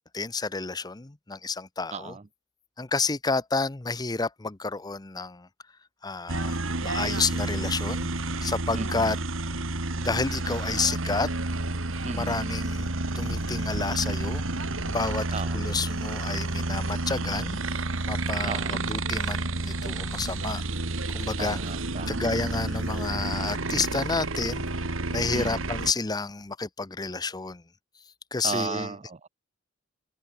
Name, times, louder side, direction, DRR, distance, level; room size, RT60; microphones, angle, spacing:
voice 1, 0.1-2.2 2.8-5.5 6.0-8.1 8.4-9.2 10.0-11.3 12.1-12.9 13.2-14.4 14.9-15.3 15.5-17.6 18.1-20.6 21.1-21.6 22.1-24.7 25.1-27.6 28.3-28.9, left 4 dB, 20° left, 0.7 m, -30 dB
voice 2, 1.9-2.2 8.7-9.2 12.0-12.4 15.3-15.6 18.5-18.8 21.4-22.2 25.3-25.7 28.4-29.3, right 4 dB, 35° right, 0.6 m, -35 dB
sound 1, 6.3-25.9, right 2 dB, 85° right, 2.4 m, -30 dB
head